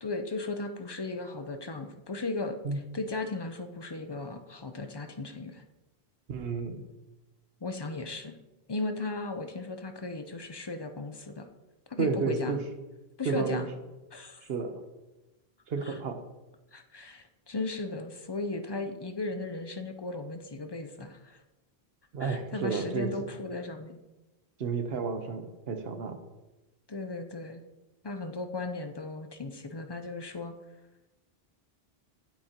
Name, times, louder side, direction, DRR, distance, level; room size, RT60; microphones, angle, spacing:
voice 1, 0.0-2.6 2.9-5.6 7.6-8.4 8.7-11.5 11.9-12.6 13.2-13.7 14.1-14.5 15.8-16.0 16.7-21.4 22.2-24.0 26.9-27.6 28.0-30.5, left 3 dB, 35° left, 7 dB, 0.5 m, -36 dB
voice 2, 6.3-6.9 12.0-12.6 13.2-13.6 14.4-14.8 15.7-16.2 22.1-23.1 24.6-26.2, right 5 dB, 70° right, 7 dB, 1.1 m, -31 dB
8.8 x 8.2 x 2.9 m, 1.1 s
omnidirectional pair, 1.1 m